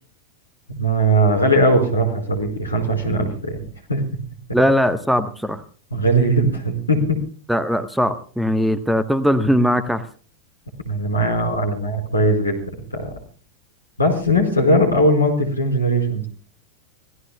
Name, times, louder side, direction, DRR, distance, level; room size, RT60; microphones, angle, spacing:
voice 1, 0.7-3.6 3.9-4.0 5.9-7.2 10.8-12.6 12.9-13.1 14.0-16.3, right 1 dB, 80° left, 3 dB, 4.8 m, -19 dB
voice 2, 4.5-5.6 7.5-10.0, equal, ahead, 12 dB, 1.2 m, -19 dB
26.0 x 17.5 x 2.3 m, 0.41 s
figure-of-eight pair, 90°, 0 cm